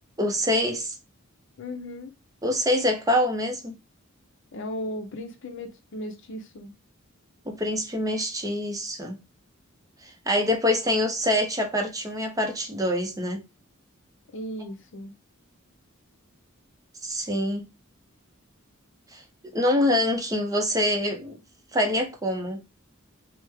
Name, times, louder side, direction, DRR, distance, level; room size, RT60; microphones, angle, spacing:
voice 1, 0.2-0.9 2.4-3.8 7.5-9.2 10.0-13.4 17.0-17.6 19.1-19.2 19.5-21.3 21.7-22.6, left 1 dB, 15° right, 0.6 m, -25 dB
voice 2, 1.6-2.1 4.5-6.7 14.3-15.1, left 1 dB, 60° left, 0.6 m, -36 dB
3.0 x 2.1 x 3.3 m
head